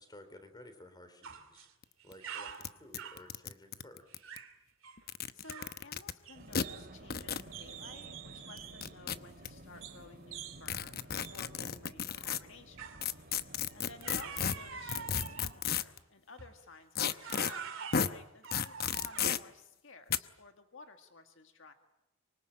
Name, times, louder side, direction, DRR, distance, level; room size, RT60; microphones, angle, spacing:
voice 1, 0.0-1.7 2.0-4.1, left 1 dB, 20° left, 9 dB, 3.6 m, -54 dB
sound 1, 1.2-1.7 2.0-3.3 4.1-4.6 4.8-5.0 5.4-5.8 6.2-7.2 7.5-8.9 9.8-10.0 10.3-10.6 11.2-11.4 12.8-13.1 14.0-15.6 16.4-16.6 17.1-19.5, right 7 dB, 65° right, 2.7 m, -46 dB
sound 2, 1.8-1.9 2.1-2.2 2.6-2.7 2.9-4.4 5.0-6.1 6.5-6.6 7.1-7.5 8.6-9.5 10.7-12.4 13.0-16.0 17.0-17.5 17.9-18.1 18.5-19.4 20.1-20.2, left 7 dB, 45° left, 0.9 m, -33 dB
voice 2, 4.9-13.0 13.4-21.7, left 3 dB, 60° left, 6 dB, 1.8 m, -55 dB
Vehicle, 6.3-15.6, right 1 dB, 45° right, 3.1 m, -53 dB
24.5 x 24.5 x 8.9 m, 0.89 s
head